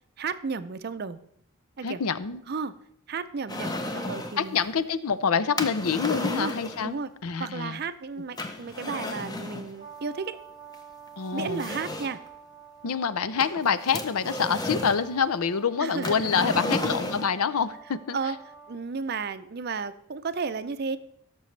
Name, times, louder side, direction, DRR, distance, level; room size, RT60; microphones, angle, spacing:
voice 1, 0.2-1.2 1.8-2.0 2.5-2.7 3.1-4.6 6.3-6.6 6.8-7.1 7.4-10.4 11.3-12.2 15.8-16.7 18.1-18.4 18.7-21.0, right 5 dB, 45° right, 12 dB, 0.5 m, -33 dB
voice 2, 1.8-2.4 4.4-7.8 11.2-11.6 12.8-18.2, left 6 dB, 80° left, 15 dB, 0.6 m, -26 dB
sound 1, 3.5-4.4 5.6-6.9 8.4-9.7 10.7-10.8 11.4-12.3 13.4-15.0 16.0-17.4, left 1 dB, 15° left, 0.6 m, -33 dB
Brass instrument, 9.8-18.8, right 6 dB, 45° left, 2.3 m, -48 dB
16.5 x 6.8 x 3.2 m, 0.72 s
head